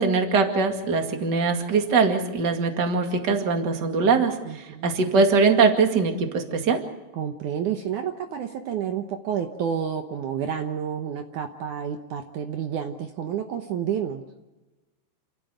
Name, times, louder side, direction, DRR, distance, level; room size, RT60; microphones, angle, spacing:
voice 1, 0.0-4.4 4.8-6.8, right 4 dB, 35° right, 5 dB, 2.4 m, -21 dB
voice 2, 4.5-4.9 7.1-14.2, right 8 dB, 65° right, 5 dB, 2.4 m, -30 dB
28.5 x 14.5 x 8.0 m, 1.1 s
omnidirectional pair, 4.0 m